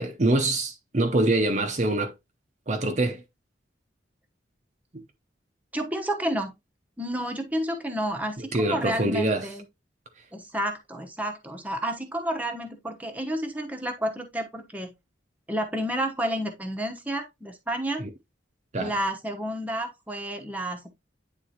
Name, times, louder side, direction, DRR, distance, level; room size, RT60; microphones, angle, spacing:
voice 1, 0.0-2.1 2.7-3.2 4.9-5.0 8.4-9.5 18.0-18.1 18.7-19.0, right 2 dB, 35° right, 0.7 m, -25 dB
voice 2, 5.7-6.5 7.0-9.6 10.3-14.9 15.5-18.0 18.8-20.9, right 1 dB, 10° right, 1.0 m, -30 dB
9.4 x 3.7 x 2.9 m
head